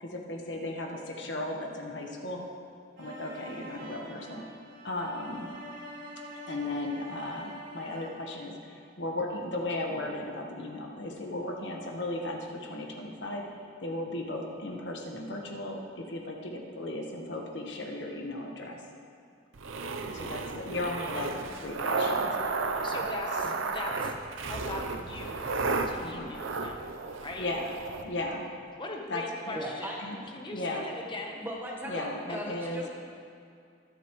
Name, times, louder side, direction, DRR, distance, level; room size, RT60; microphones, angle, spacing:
voice 1, 0.0-2.5 3.0-4.4 4.8-5.5 6.3-13.4 13.8-18.8 20.0-22.3 23.4-23.6 26.0-26.3 27.4-27.8 28.0-28.5 29.1-29.6 30.0-30.2 30.5-30.9 31.9-32.8, left 2 dB, 65° left, 1 dB, 1.4 m, -36 dB
sound 1, 3.0-8.3, right 1 dB, 45° right, 2.5 m, -45 dB
sound 2, 19.6-28.0, right 3 dB, 90° right, 0.7 m, -33 dB
voice 2, 22.8-24.1 24.5-25.5 25.9-26.9 27.2-27.5 28.8-29.9 30.3-31.4 32.3-32.4, left 2 dB, 25° left, 1 dB, 1.1 m, -40 dB
voice 3, 29.5-30.0 31.4-32.9, equal, 10° right, -2 dB, 1.3 m, -37 dB
22.5 x 8.1 x 3.2 m, 2.4 s
head